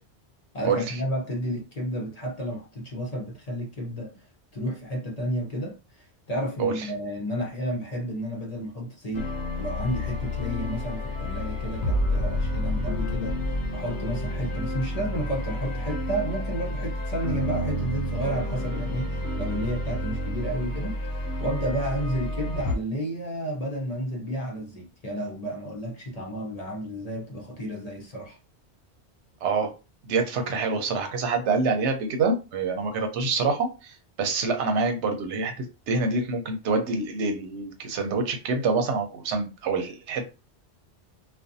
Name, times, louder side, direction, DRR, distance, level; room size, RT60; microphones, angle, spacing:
voice 1, 0.5-4.1 4.5-9.3 9.6-28.4, equal, 40° left, 0.6 m, -32 dB
sound 1, 9.1-22.8, left 1 dB, 75° left, 0.9 m, -29 dB
voice 2, 29.4-29.7 30.1-40.2, right 4 dB, 85° right, 0.9 m, -26 dB
2.5 x 2.2 x 2.6 m
omnidirectional pair, 1.2 m